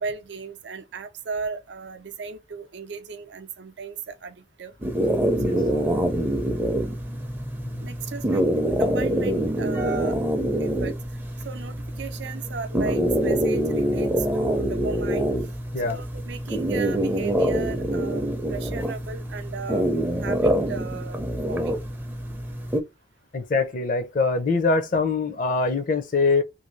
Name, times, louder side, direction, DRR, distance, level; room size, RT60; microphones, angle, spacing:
voice 1, 0.0-4.7 5.4-6.1 7.8-8.4 8.7-10.2 10.6-11.0 11.4-15.3 15.8-19.9 20.2-21.2 21.5-21.8, right 4 dB, 75° right, 0.5 m, -36 dB
sound 1, 4.8-22.8, right 1 dB, 10° right, 0.5 m, -25 dB
voice 2, 23.3-26.4, left 4 dB, 45° left, 0.5 m, -23 dB
2.7 x 2.6 x 3.0 m
head